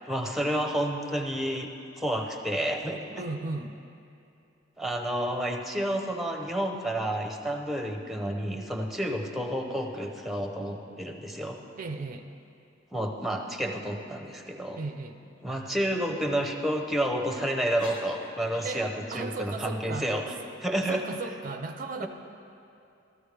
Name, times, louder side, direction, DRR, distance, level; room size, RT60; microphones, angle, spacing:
voice 1, 0.1-1.7 2.0-3.2 4.8-11.6 12.9-14.8 15.4-20.2 20.6-21.0, right 1 dB, ahead, 3 dB, 0.7 m, -30 dB
voice 2, 3.2-3.8 11.8-12.3 14.8-15.2 18.6-22.1, right 3 dB, 45° right, 7 dB, 0.4 m, -36 dB
sound 1, 11.9-12.5 13.0-13.2 13.6-13.9 14.2-14.6 15.2-15.6 16.1-16.2 17.0-17.3 17.7-18.9, left 1 dB, 75° left, 1.3 m, -49 dB
14.0 x 13.5 x 3.3 m, 2.6 s
head